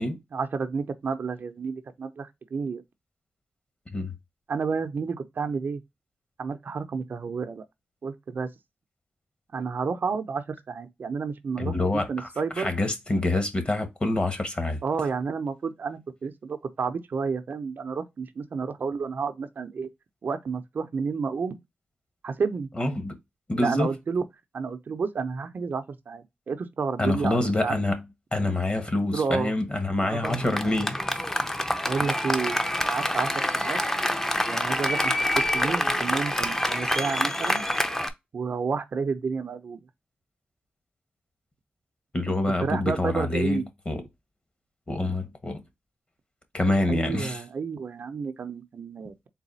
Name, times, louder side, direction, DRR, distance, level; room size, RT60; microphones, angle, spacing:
voice 1, 0.3-2.8 4.5-5.8 6.4-7.6 8.0-8.5 9.5-12.7 14.8-19.9 20.2-21.6 22.2-22.7 23.5-24.2 24.5-27.8 29.1-29.5 30.1-30.4 31.8-32.6 32.9-33.8 34.5-37.7 38.3-39.8 42.6-43.7 46.9-49.1, right 5 dB, 65° right, 0.6 m, -30 dB
voice 2, 11.6-12.3 12.6-14.8 22.7-23.2 23.5-23.9 27.0-28.0 28.3-31.4 32.0-32.1 42.1-44.0 44.9-45.6 46.5-47.4, left 2 dB, 30° left, 1.3 m, -26 dB
Applause, 30.2-38.1, left 1 dB, 15° left, 0.7 m, -26 dB
4.0 x 2.3 x 4.0 m
cardioid pair, 70°, 4 cm